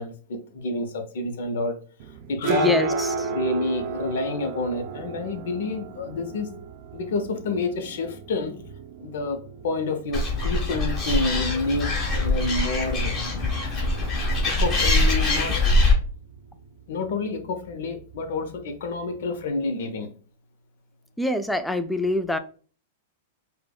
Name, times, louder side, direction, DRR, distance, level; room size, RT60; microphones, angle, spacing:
voice 1, 0.0-1.8 2.3-2.8 3.3-6.5 6.9-8.5 9.0-13.5 14.4-15.6 16.9-20.1, left 3 dB, 70° left, 8 dB, 0.6 m, -29 dB
sound 1, 2.0-19.5, right 4 dB, 50° right, 0.5 m, -35 dB
voice 2, 2.5-3.1 21.2-22.4, left 2 dB, 5° left, 10 dB, 0.3 m, -25 dB
Animal, 10.1-15.9, left 2 dB, 25° left, 1.3 m, -23 dB
4.4 x 2.1 x 2.3 m, 0.40 s
hypercardioid pair, 125°, 0 cm